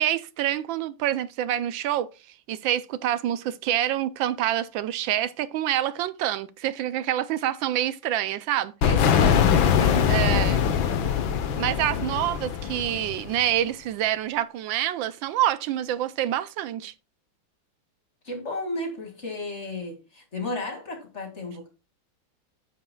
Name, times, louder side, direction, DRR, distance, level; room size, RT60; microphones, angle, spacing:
voice 1, 0.0-2.1 2.5-8.7 10.1-10.6 11.6-16.9, right 12 dB, 80° right, 1.3 m, -26 dB
sound 1, 8.8-13.5, left 7 dB, 75° left, 1.8 m, -22 dB
voice 2, 8.8-11.2 18.2-21.7, left 3 dB, 35° left, 2.6 m, -34 dB
9.5 x 9.4 x 2.3 m
omnidirectional pair, 2.2 m